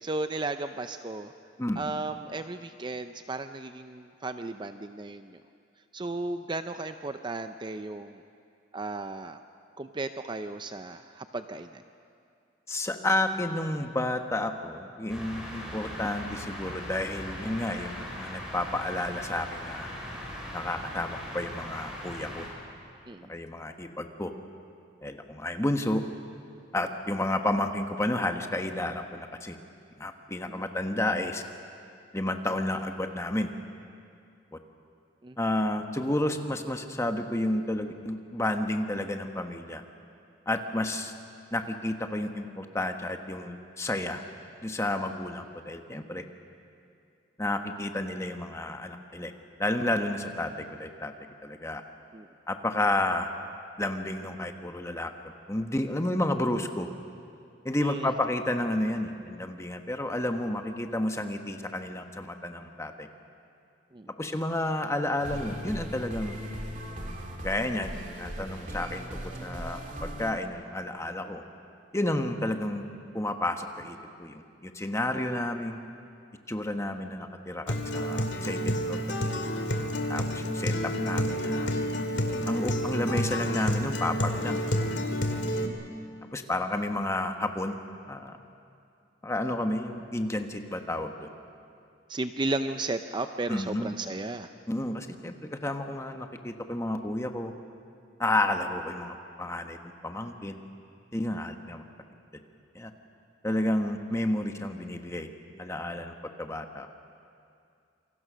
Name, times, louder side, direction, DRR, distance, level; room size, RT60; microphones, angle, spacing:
voice 1, 0.0-1.3 1.8-5.4 5.9-8.2 8.7-9.4 9.8-11.8 15.6-15.8 23.1-23.3 30.4-30.7 35.2-35.4 52.1-52.3 57.8-58.1 63.9-64.1 85.7-85.8 92.1-94.5, right 2 dB, 25° right, 9 dB, 0.5 m, -34 dB
voice 2, 1.6-1.9 12.7-19.9 20.5-22.4 23.3-24.3 25.0-26.0 26.7-29.6 30.0-31.4 32.1-33.5 35.4-39.8 40.5-41.1 41.5-44.2 44.6-46.2 47.4-49.3 49.6-51.1 51.4-51.8 52.5-53.3 53.8-55.1 55.5-56.9 57.6-63.1 64.2-66.3 67.4-69.1 69.4-71.4 71.9-72.8 73.1-75.8 76.5-79.0 79.2-79.3 80.1-80.7 81.0-81.7 82.5-84.6 86.3-87.8 88.1-88.4 89.2-91.3 93.5-93.9 94.7-97.5 98.2-99.8 100.0-100.6 101.1-101.8 102.7-102.9 103.4-105.3 105.6-106.9, left 1 dB, 15° left, 5 dB, 1.3 m, -31 dB
sound 1, 15.1-22.5, equal, 5° right, 5.5 m, -40 dB
sound 2, 65.2-70.3, equal, 45° right, 2.5 m, -38 dB
Acoustic guitar, 77.7-85.7, equal, 65° left, 2.3 m, -29 dB
27.5 x 24.5 x 6.3 m, 2.5 s
head